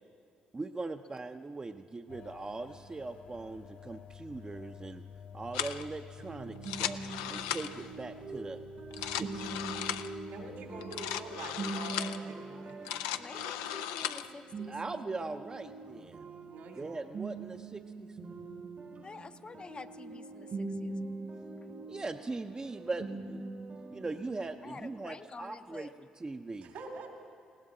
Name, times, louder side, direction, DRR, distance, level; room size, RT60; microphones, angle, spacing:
voice 1, 0.5-5.0 5.3-7.0 7.3-8.6 8.9-9.8 14.7-16.3 16.8-18.1 21.9-23.5 23.9-25.9 26.2-26.7, right 3 dB, 25° right, 6 dB, 0.6 m, -40 dB
sound 1, 2.1-11.6, left 7 dB, 60° left, 1.1 m, -52 dB
sound 2, 5.5-5.8 6.6-7.9 8.8-10.1 10.8-12.2 12.7-14.3, left 11 dB, 90° left, 0.4 m, -37 dB
sound 3, 6.2-25.0, right 3 dB, 50° right, 1.1 m, -43 dB
voice 2, 10.3-12.8 16.5-17.1 26.6-27.1, right 3 dB, 75° right, 2 dB, 2.6 m, -45 dB
voice 3, 13.1-14.8 19.0-21.0 24.6-25.9, left 4 dB, 35° left, 9 dB, 0.6 m, -48 dB
20.0 x 17.0 x 3.9 m, 2.3 s
hypercardioid pair, 55°, 3 cm